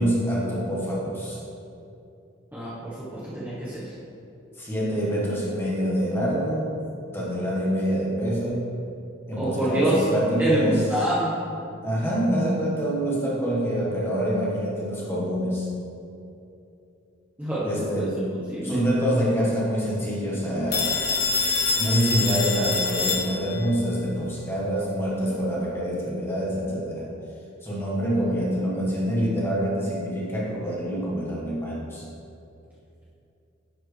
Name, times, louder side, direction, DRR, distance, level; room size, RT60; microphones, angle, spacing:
voice 1, 0.0-1.4 4.6-6.7 7.1-8.7 9.3-10.8 11.8-15.7 17.6-18.3 18.6-21.0 21.8-27.1 27.6-32.0, equal, 10° left, -6 dB, 1.4 m, -26 dB
voice 2, 2.5-3.9 9.4-10.1 10.4-11.3 17.4-18.1 18.5-18.8, right 1 dB, 10° right, -10 dB, 1.0 m, -26 dB
Telephone, 20.7-23.7, left 4 dB, 55° left, 1.3 m, -25 dB
10.5 x 4.5 x 3.2 m, 2.7 s
head